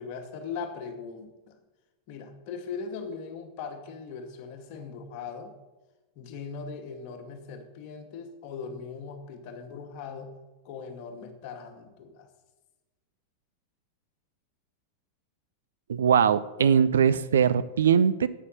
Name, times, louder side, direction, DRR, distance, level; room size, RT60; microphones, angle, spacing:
voice 1, 0.0-1.6 2.1-5.5 6.2-10.3 10.6-12.3, left 5 dB, 45° left, 5 dB, 1.2 m, -39 dB
voice 2, 15.9-18.3, right 7 dB, 65° right, 15 dB, 0.3 m, -21 dB
8.3 x 5.6 x 6.4 m, 1.1 s
figure-of-eight pair, 90°, 0 cm